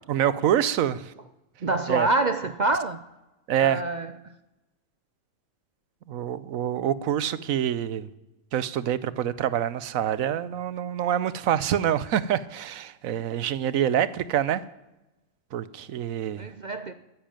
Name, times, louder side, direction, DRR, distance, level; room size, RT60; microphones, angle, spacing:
voice 1, 0.1-1.1 1.9-2.1 3.5-3.8 6.1-8.1 8.5-14.6 15.5-16.5, right 10 dB, 85° right, 1.2 m, -26 dB
voice 2, 1.6-3.0 3.6-4.1 16.4-16.9, right 2 dB, 50° right, 0.5 m, -26 dB
14.0 x 10.5 x 9.0 m
omnidirectional pair, 1.4 m